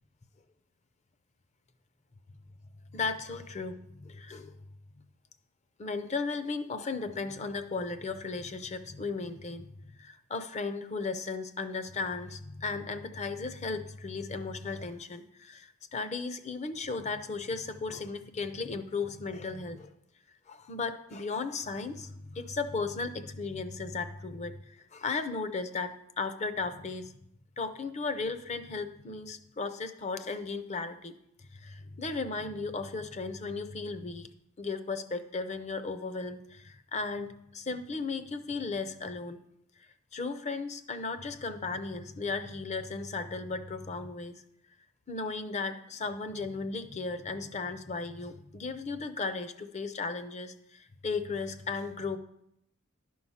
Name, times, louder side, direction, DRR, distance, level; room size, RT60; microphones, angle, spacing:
voice 1, 2.9-4.6 5.8-19.9 20.5-27.1 27.6-34.3 34.6-39.4 39.8-44.4 45.1-52.2, left 4 dB, 30° left, 10 dB, 0.6 m, -36 dB
11.5 x 4.7 x 5.6 m, 0.77 s
head